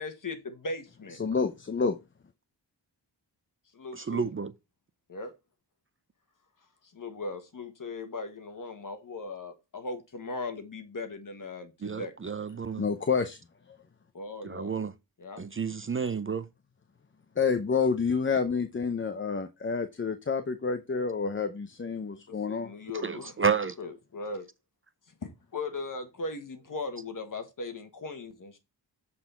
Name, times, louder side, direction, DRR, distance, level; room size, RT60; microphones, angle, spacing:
voice 1, 0.0-1.2 3.7-4.3 5.1-5.3 6.9-12.1 14.1-14.7 15.2-15.4 22.3-23.5 23.8-24.5 25.2-28.6, left 3 dB, 50° left, 1.6 m, -38 dB
voice 2, 1.2-2.0 12.8-13.4 17.4-22.7, left 5 dB, 30° left, 0.7 m, -28 dB
voice 3, 3.9-4.5 11.8-12.8 14.4-14.9 15.4-16.5 23.0-23.7, right 5 dB, 30° right, 0.6 m, -30 dB
7.7 x 4.2 x 4.4 m
wide cardioid pair, 85°, 42 cm